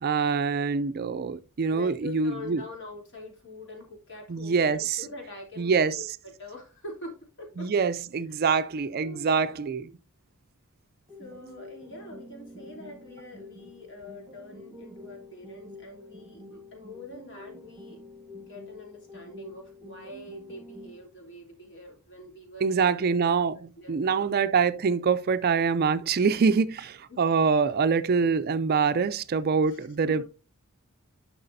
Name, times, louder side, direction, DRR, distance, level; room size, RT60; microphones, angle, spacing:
voice 1, 0.0-2.6 4.3-5.0 5.6-6.0 7.6-9.9 22.6-30.2, right 5 dB, 45° right, 0.4 m, -25 dB
voice 2, 1.7-7.7 8.3-8.5 9.0-9.8 11.2-18.0 18.5-23.2 23.8-24.3 26.8-27.2 29.7-30.2, left 2 dB, 55° left, 3.2 m, -45 dB
sound 1, 11.1-21.1, left 2 dB, 10° right, 1.2 m, -47 dB
11.0 x 5.9 x 2.6 m
head